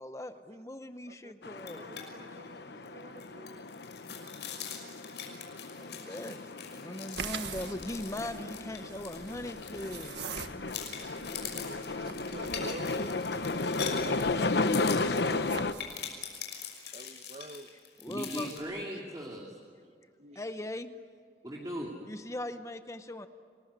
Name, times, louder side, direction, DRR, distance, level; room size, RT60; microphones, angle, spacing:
voice 1, 0.0-1.9 5.7-10.4 17.0-17.2 18.0-18.5 20.3-20.9 22.1-23.3, left 1 dB, 15° left, 0.8 m, -40 dB
sound 1, 1.4-15.7, left 3 dB, 70° left, 1.0 m, -34 dB
sound 2, 1.6-2.0 2.3-2.5 2.8-10.3 10.7-18.6, left 8 dB, 90° left, 6.0 m, -43 dB
voice 2, 1.8-3.7 10.9-14.6 16.9-17.7 20.2-20.4, right 1 dB, 40° right, 1.1 m, -48 dB
sound 3, 7.1-16.0, right 5 dB, 80° right, 1.6 m, -45 dB
voice 3, 18.1-19.6 21.4-21.9, equal, 20° right, 2.7 m, -38 dB
29.5 x 20.5 x 9.6 m
head